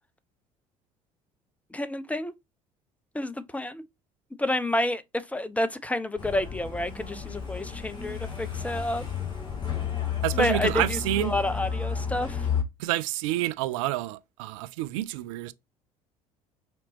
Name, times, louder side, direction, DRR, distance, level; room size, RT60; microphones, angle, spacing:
voice 1, 1.7-2.3 3.1-3.8 4.4-9.1 10.3-12.5, left 1 dB, 10° left, 0.6 m, -29 dB
Truck, 6.2-12.6, left 7 dB, 25° left, 2.2 m, -32 dB
voice 2, 10.2-11.3 12.8-15.5, right 16 dB, 65° right, 0.4 m, -28 dB
5.0 x 2.9 x 2.8 m
figure-of-eight pair, 60°, 18 cm